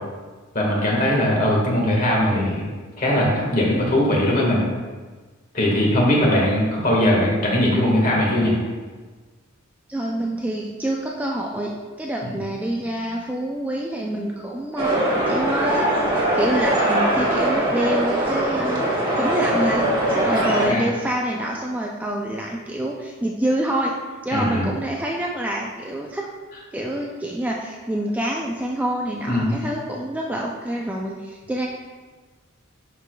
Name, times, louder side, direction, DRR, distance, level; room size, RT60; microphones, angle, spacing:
voice 1, 0.5-2.6 3.0-4.6 5.5-8.6 20.7-20.8 24.3-24.7 29.3-29.6, left 1 dB, 40° left, -3 dB, 1.6 m, -20 dB
voice 2, 9.9-11.7 12.0-15.0 15.3-15.9 16.3-18.8 19.2-19.8 20.3-23.9 24.2-26.2 26.7-31.7, right 1 dB, 5° right, -2 dB, 0.4 m, -26 dB
sound 1, 14.8-20.7, right 1 dB, 25° right, 1.3 m, -21 dB
10.5 x 4.7 x 2.3 m, 1.4 s
head